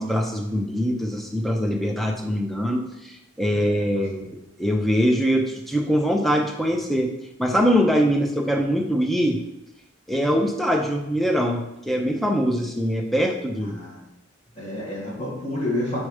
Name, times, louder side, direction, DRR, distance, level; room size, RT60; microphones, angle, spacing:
voice 1, 0.0-7.1 7.4-9.4 10.1-13.8, equal, ahead, 2 dB, 0.5 m, -23 dB
voice 2, 3.5-4.0 10.1-10.5 13.6-14.0 14.6-16.0, left 1 dB, 30° left, -6 dB, 2.0 m, -30 dB
4.7 x 4.3 x 4.9 m, 0.88 s
head